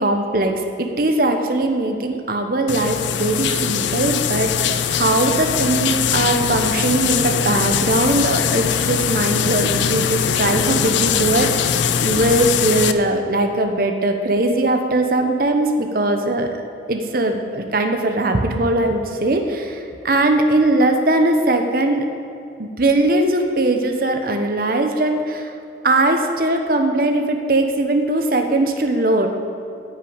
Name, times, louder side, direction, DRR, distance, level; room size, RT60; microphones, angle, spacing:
voice 1, 0.0-16.6 16.9-22.1 22.6-25.5 25.8-29.3, right 2 dB, 50° right, 5 dB, 1.0 m, -20 dB
sound 1, 2.7-12.9, left 8 dB, 85° left, 0.5 m, -21 dB
9.9 x 6.8 x 8.7 m, 2.6 s
head